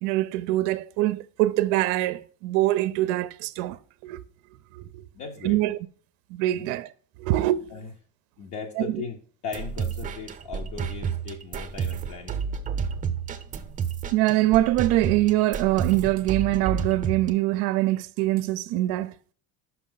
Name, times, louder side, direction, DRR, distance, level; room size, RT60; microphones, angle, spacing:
voice 1, 0.0-4.2 4.7-5.1 5.4-5.8 6.3-6.9 7.2-7.7 8.8-9.0 14.1-19.1, right 16 dB, 80° right, 0.5 m, -24 dB
voice 2, 5.1-5.6 6.5-6.8 7.7-7.9 8.4-9.2 9.4-12.5, left 6 dB, 60° left, 0.9 m, -38 dB
sound 1, 9.5-17.3, right 7 dB, 25° right, 0.6 m, -31 dB
5.9 x 5.1 x 3.8 m
cardioid pair, 140°, 32 cm